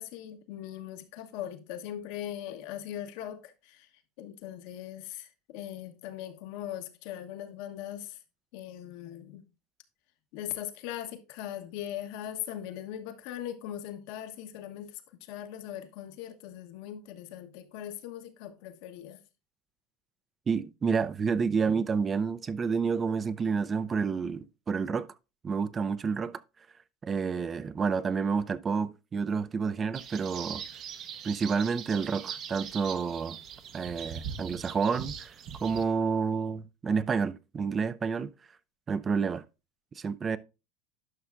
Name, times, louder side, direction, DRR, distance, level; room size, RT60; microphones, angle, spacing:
voice 1, 0.0-3.9 4.2-8.2 8.5-9.4 10.3-19.2, left 11 dB, 70° left, 1.0 m, -40 dB
voice 2, 20.5-25.1 25.4-26.4 27.0-30.6 31.2-33.4 33.7-35.3 35.6-38.3 38.9-39.4 40.0-40.4, right 5 dB, 30° right, 0.4 m, -29 dB
sound 1, 29.9-35.8, right 8 dB, 50° right, 0.8 m, -41 dB
11.0 x 5.6 x 2.5 m
supercardioid pair, 100°, 0 cm